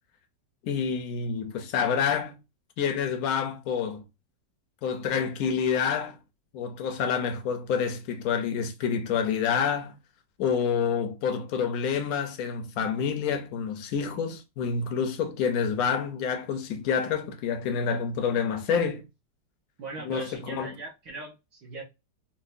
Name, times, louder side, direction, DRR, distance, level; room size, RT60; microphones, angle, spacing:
voice 1, 0.6-2.4 2.8-4.0 4.8-6.2 6.5-10.0 10.4-19.0 20.0-20.7, left 6 dB, 65° left, 1.0 m, -28 dB
voice 2, 19.8-21.8, right 3 dB, 65° right, 1.4 m, -40 dB
4.3 x 2.2 x 2.6 m
omnidirectional pair, 1.9 m